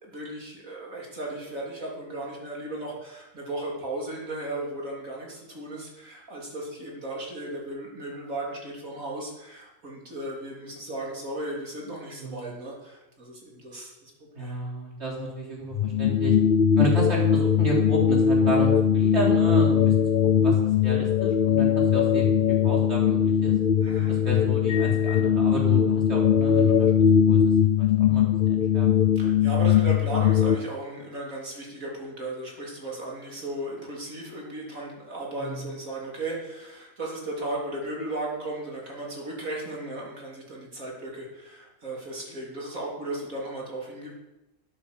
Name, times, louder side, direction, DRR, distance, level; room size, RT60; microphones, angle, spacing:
voice 1, 0.0-14.1 14.4-14.6 23.8-24.5 29.2-44.1, right 2 dB, 65° right, -3 dB, 3.8 m, -36 dB
voice 2, 12.2-12.5 14.4-16.3 16.7-19.9 20.4-20.6 20.8-23.5 24.1-27.4 27.8-28.9 29.2-29.3 35.4-35.7, right 2 dB, 50° right, -3 dB, 4.0 m, -32 dB
sound 1, 15.7-30.6, left 8 dB, 55° left, 0.6 m, -21 dB
12.5 x 9.0 x 6.9 m, 0.96 s
omnidirectional pair, 1.5 m